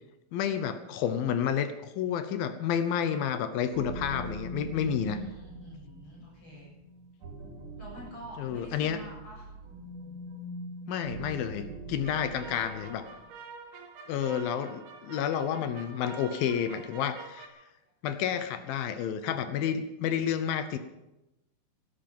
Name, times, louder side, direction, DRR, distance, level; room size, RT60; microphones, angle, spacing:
voice 1, 0.3-5.2 8.4-9.0 10.9-13.0 14.1-17.5 18.0-20.8, left 8 dB, 75° left, 10 dB, 2.5 m, -30 dB
sound 1, 3.7-12.9, right 1 dB, 65° right, 5.1 m, -43 dB
voice 2, 5.0-6.7 7.8-9.5 12.2-13.2 17.8-17.9, right 2 dB, 30° left, -5 dB, 8.1 m, -47 dB
sound 2, 12.0-17.5, right 5 dB, 90° right, 3.5 m, -47 dB
17.0 x 13.0 x 5.4 m, 0.94 s
omnidirectional pair, 4.5 m